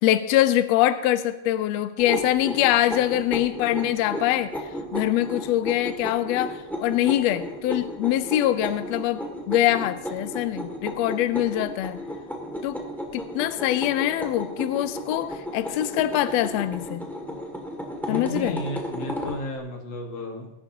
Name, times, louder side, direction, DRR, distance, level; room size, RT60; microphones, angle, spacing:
voice 1, 0.0-4.6 4.9-12.0 12.6-12.8 13.1-17.0 18.1-18.6, left 13 dB, 85° left, 12 dB, 1.5 m, -24 dB
sound 1, 2.0-19.4, equal, ahead, 1.2 m, -34 dB
voice 2, 18.1-20.5, left 1 dB, 55° left, 2 dB, 2.5 m, -33 dB
20.0 x 11.0 x 2.8 m, 0.92 s
omnidirectional pair, 3.5 m